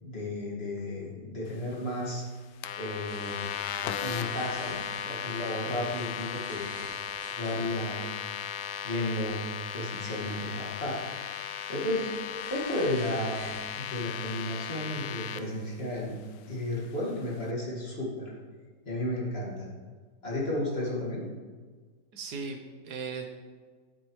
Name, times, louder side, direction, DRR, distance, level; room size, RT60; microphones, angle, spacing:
voice 1, 0.0-2.2 2.8-3.5 4.0-6.9 7.3-8.1 8.8-9.4 9.7-11.0 11.7-12.1 12.5-13.5 13.8-16.1 16.5-18.3 18.9-19.7 20.2-21.2, left 1 dB, 35° left, -4 dB, 2.1 m, -33 dB
sound 1, 2.6-15.4, left 9 dB, 90° left, 1.2 m, -36 dB
sound 2, 3.1-15.3, right 1 dB, 50° right, 2.6 m, -51 dB
voice 2, 22.1-23.4, right 4 dB, 70° right, 4 dB, 1.4 m, -38 dB
10.0 x 8.8 x 3.1 m, 1.5 s
omnidirectional pair, 1.8 m